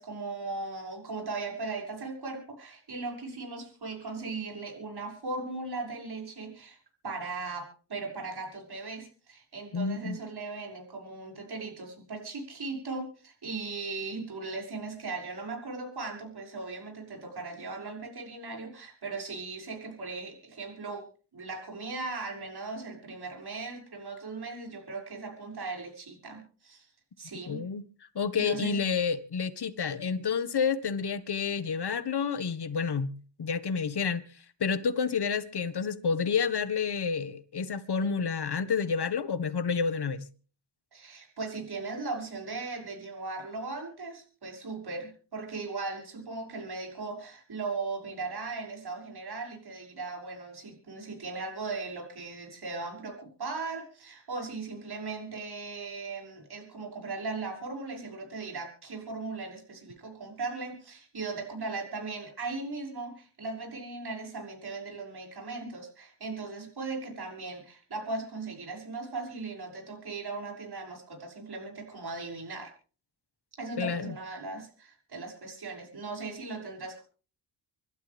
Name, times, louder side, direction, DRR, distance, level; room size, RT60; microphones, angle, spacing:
voice 1, 0.0-6.8 7.0-21.0 21.3-26.9 27.2-27.6 28.4-28.8 40.9-72.7 73.6-77.0, right 3 dB, 50° right, 6.5 m, -38 dB
voice 2, 9.7-10.2 27.5-27.8 28.1-33.1 33.4-34.2 34.6-40.3 73.8-74.1, left 6 dB, 50° left, 1.7 m, -29 dB
26.5 x 12.5 x 3.6 m
cardioid pair, 65°, 49 cm